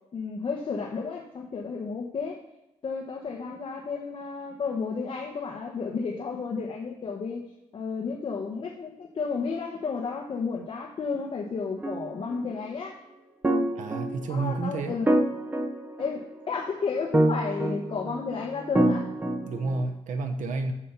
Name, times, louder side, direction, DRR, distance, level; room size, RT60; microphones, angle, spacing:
voice 1, 0.1-2.4 2.8-7.4 7.7-13.0 14.3-15.1 16.0-19.1, left 5 dB, 45° left, -1 dB, 1.0 m, -32 dB
sound 1, 11.8-12.4 13.4-14.5 15.1-16.5 17.1-18.2 18.7-19.8, right 1 dB, 15° right, 0.6 m, -26 dB
voice 2, 13.8-15.0 19.5-20.7, right 3 dB, 80° right, 5 dB, 1.0 m, -30 dB
7.1 x 6.9 x 5.9 m, 0.93 s
wide cardioid pair, 175°, 13 cm